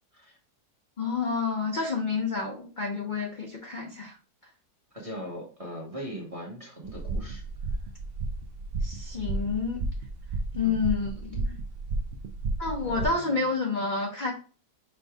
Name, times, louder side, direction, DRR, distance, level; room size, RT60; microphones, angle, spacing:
voice 1, 1.0-4.1 8.8-9.8 10.5-11.6 12.6-14.3, left 4 dB, 45° left, 0 dB, 0.6 m, -29 dB
voice 2, 4.9-7.4 10.6-10.8 12.8-13.4, equal, 25° right, -1 dB, 1.0 m, -39 dB
sound 1, 6.8-13.1, right 2 dB, 80° right, 0.5 m, -33 dB
5.7 x 2.7 x 3.4 m, 0.37 s
omnidirectional pair, 1.7 m